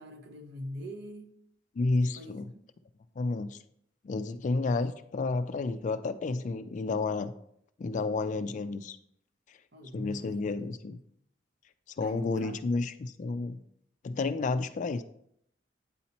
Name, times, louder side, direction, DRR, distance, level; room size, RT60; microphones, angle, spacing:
voice 1, 0.0-1.3 2.1-2.4 9.7-10.5 12.0-12.6, equal, 65° right, 0.8 m, -43 dB
voice 2, 1.8-2.5 3.2-3.6 4.0-7.3 7.8-9.0 9.9-11.0 12.0-13.6 14.0-15.0, left 3 dB, 40° left, 0.3 m, -31 dB
8.4 x 4.2 x 2.9 m
head